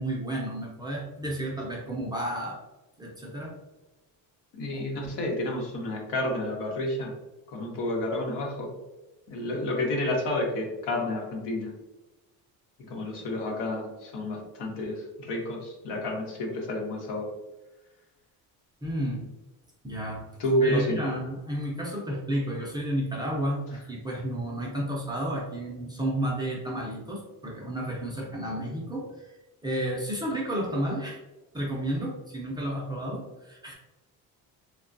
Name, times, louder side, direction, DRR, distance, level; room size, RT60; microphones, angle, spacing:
voice 1, 0.0-2.6 3.0-3.6 4.7-4.8 18.8-19.2 19.8-20.3 20.6-29.4 29.6-31.2 31.5-33.7, right 1 dB, 10° right, -4 dB, 0.4 m, -32 dB
voice 2, 4.5-7.1 7.5-8.7 9.3-11.7 12.9-17.3 20.4-21.0, left 1 dB, 85° left, 0 dB, 0.9 m, -30 dB
3.2 x 2.2 x 2.5 m, 1.1 s
cardioid pair, 150°, 39 cm